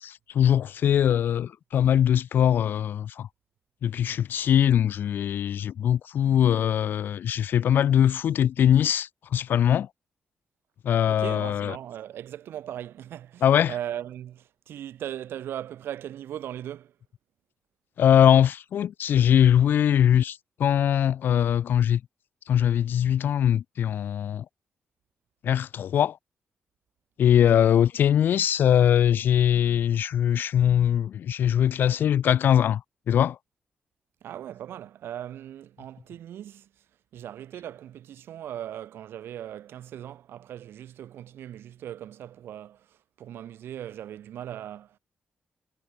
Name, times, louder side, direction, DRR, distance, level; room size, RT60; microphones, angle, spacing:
voice 1, 0.0-3.3 3.8-9.9 10.8-11.8 13.4-13.7 18.0-22.0 22.5-24.4 25.4-26.2 27.2-32.8 33.1-33.4, left 9 dB, 60° left, 0.3 m, -22 dB
voice 2, 11.1-16.9 27.4-27.8 34.2-36.7 37.1-45.0, right 11 dB, 85° right, 1.8 m, -39 dB
wide cardioid pair, 160°, 4 cm